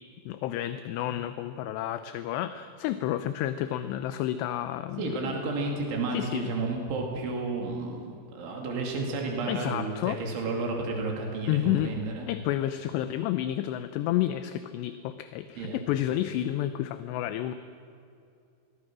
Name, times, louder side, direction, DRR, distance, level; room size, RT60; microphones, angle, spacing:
voice 1, 0.3-5.3 6.1-6.5 9.5-10.2 11.5-12.0 12.3-17.5, left 12 dB, 80° left, 10 dB, 2.7 m, -30 dB
voice 2, 5.0-12.3 15.6-15.8, right 3 dB, 90° right, 0 dB, 5.0 m, -32 dB
28.0 x 21.0 x 6.2 m, 2.5 s
omnidirectional pair, 5.3 m